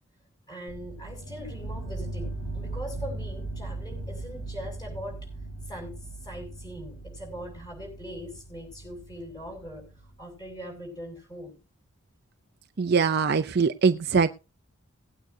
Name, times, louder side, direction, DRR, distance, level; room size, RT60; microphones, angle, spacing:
voice 1, 0.5-5.2 5.7-6.0 6.2-9.8 10.2-11.6, equal, 20° left, 1 dB, 6.4 m, -41 dB
sound 1, 0.7-10.5, right 2 dB, 90° left, 4.6 m, -38 dB
voice 2, 12.8-14.3, right 5 dB, 45° right, 9 dB, 0.5 m, -22 dB
19.5 x 9.1 x 2.7 m, 0.31 s
head